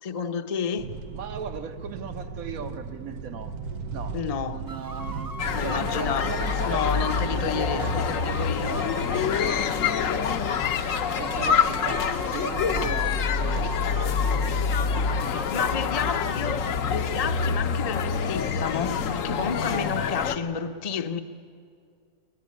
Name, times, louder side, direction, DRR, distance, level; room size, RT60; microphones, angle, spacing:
voice 1, 0.0-0.9 4.1-4.6 5.5-6.4 6.6-8.8 15.2-21.2, left 6 dB, 35° left, 0.7 m, -31 dB
sound 1, 0.8-15.4, right 5 dB, 90° right, 1.4 m, -39 dB
voice 2, 1.1-3.5 3.9-4.2 4.5-5.3 5.6-8.0 8.6-8.9 9.4-10.5 11.2-13.9 19.7-20.0, right 6 dB, 70° right, 1.6 m, -37 dB
sound 2, 4.7-10.3 10.7-13.1 13.4-16.3, right 2 dB, 20° right, 0.6 m, -40 dB
sound 3, 5.4-20.4, left 6 dB, 65° left, 1.2 m, -26 dB
22.5 x 22.5 x 9.9 m
omnidirectional pair, 1.5 m